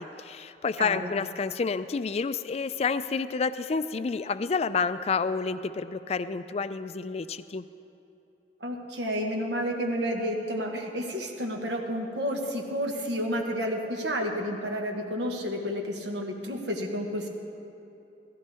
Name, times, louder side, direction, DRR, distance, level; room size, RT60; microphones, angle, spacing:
voice 1, 0.0-7.6, left 5 dB, 35° left, 13 dB, 0.4 m, -29 dB
voice 2, 0.8-1.1 8.6-17.3, equal, 80° right, 1 dB, 1.5 m, -31 dB
16.0 x 14.5 x 3.5 m, 2.9 s
head